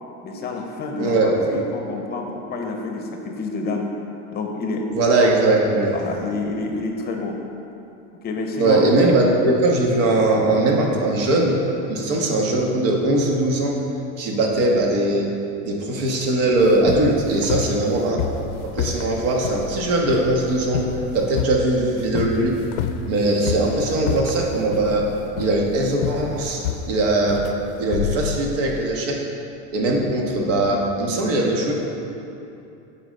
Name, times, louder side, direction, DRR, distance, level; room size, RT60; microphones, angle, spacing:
voice 1, 0.2-3.9 4.3-4.9 5.9-7.4 8.2-8.8, left 3 dB, 25° left, 2 dB, 0.6 m, -28 dB
voice 2, 1.0-1.6 4.9-5.9 8.6-11.6 11.9-13.8 14.2-15.3 15.6-18.2 18.6-20.9 21.1-22.6 23.1-25.1 25.4-27.4 27.8-29.3 29.7-31.7, right 2 dB, 75° right, 0 dB, 1.5 m, -20 dB
sound 1, 16.6-28.8, left 8 dB, 85° left, 0.6 m, -29 dB
10.0 x 4.0 x 5.3 m, 2.8 s
supercardioid pair, 150°, 36 cm